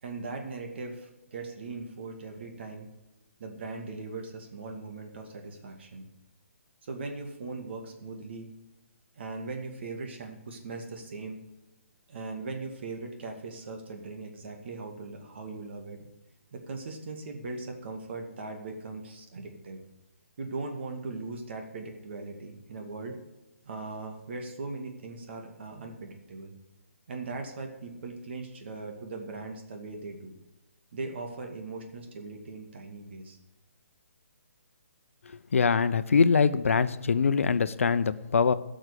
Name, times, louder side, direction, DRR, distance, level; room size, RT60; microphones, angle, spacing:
voice 1, 0.0-2.9 3.4-6.1 6.8-8.5 9.2-11.4 12.1-16.0 16.5-19.8 20.4-23.2 23.6-26.5 27.1-30.3 30.9-33.4, right 3 dB, 55° right, 3 dB, 2.4 m, -39 dB
voice 2, 35.5-38.5, left 5 dB, 75° left, 13 dB, 0.8 m, -23 dB
12.0 x 6.4 x 8.4 m, 1.0 s
hypercardioid pair, 150°, 7 cm